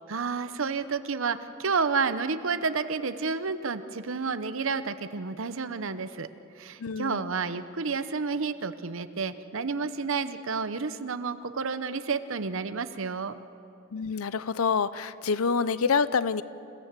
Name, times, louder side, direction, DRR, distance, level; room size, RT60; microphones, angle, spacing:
voice 1, 0.1-6.3 6.6-13.4, right 5 dB, 65° right, 11 dB, 0.8 m, -30 dB
voice 2, 6.8-7.2 13.9-16.4, left 5 dB, 85° left, 16 dB, 0.6 m, -27 dB
28.5 x 16.5 x 7.5 m, 2.7 s
head